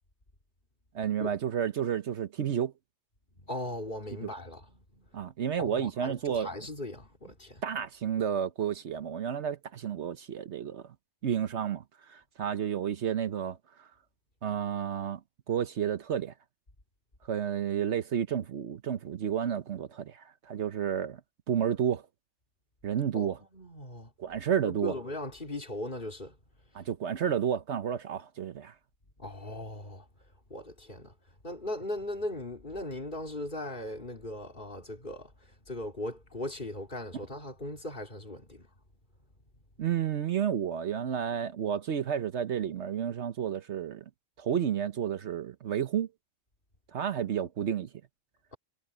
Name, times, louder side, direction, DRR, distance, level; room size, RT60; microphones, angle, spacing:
voice 1, 0.9-2.7 5.1-6.5 7.6-10.8 11.2-13.9 14.4-15.2 15.5-16.3 17.3-21.2 21.5-22.1 22.8-23.4 24.2-25.0 26.7-28.7 39.8-44.0 44.4-46.1 46.9-47.9, right 8 dB, 65° right, 1.1 m, -31 dB
voice 2, 3.5-5.3 5.6-7.6 23.1-24.1 24.6-26.3 29.2-30.1 30.5-31.1 31.4-35.3 35.7-38.7, left 1 dB, 40° left, 3.9 m, -38 dB
omnidirectional pair, 1.3 m